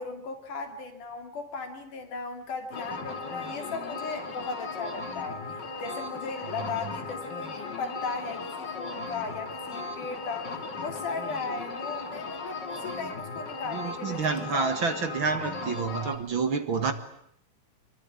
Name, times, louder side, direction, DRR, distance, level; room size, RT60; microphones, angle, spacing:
voice 1, 0.0-5.4 5.8-10.5 10.8-15.0, left 4 dB, 85° left, 5 dB, 4.6 m, -37 dB
sound 1, 2.7-16.2, left 3 dB, 35° left, 2.9 m, -37 dB
voice 2, 13.7-16.9, right 5 dB, 45° right, 8 dB, 2.2 m, -29 dB
26.0 x 23.0 x 9.8 m, 0.70 s
omnidirectional pair, 3.5 m